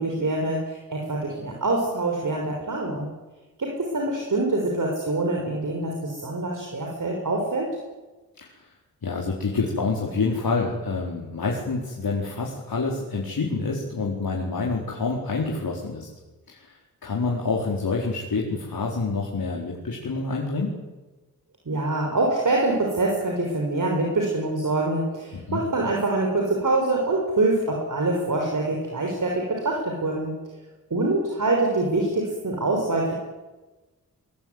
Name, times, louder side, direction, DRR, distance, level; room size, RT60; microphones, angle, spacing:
voice 1, 0.0-3.1 3.6-7.7 21.7-30.3 30.9-33.1, right 2 dB, 60° right, 0 dB, 6.2 m, -25 dB
voice 2, 9.0-16.1 16.5-16.8 17.0-20.8 25.3-25.6, left 4 dB, 75° left, -2 dB, 4.6 m, -27 dB
23.5 x 23.0 x 9.7 m, 1.2 s
wide cardioid pair, 85°, 36 cm